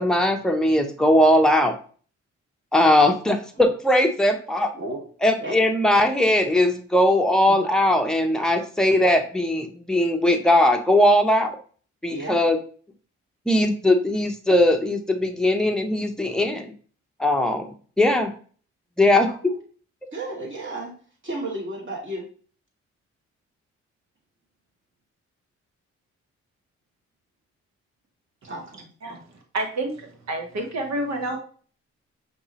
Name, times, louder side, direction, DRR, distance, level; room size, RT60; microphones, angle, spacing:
voice 1, 0.0-1.7 2.7-4.7 5.2-11.6 12.0-12.6 13.5-16.7 17.2-18.3 19.0-19.3, left 1 dB, ahead, 3 dB, 0.9 m, -19 dB
voice 2, 20.1-20.9 21.2-22.3 28.4-29.2, right 1 dB, 40° right, -2 dB, 2.2 m, -33 dB
voice 3, 29.5-31.4, right 1 dB, 60° right, 4 dB, 1.3 m, -28 dB
5.3 x 2.9 x 3.0 m, 0.43 s
supercardioid pair, 55°, 30 cm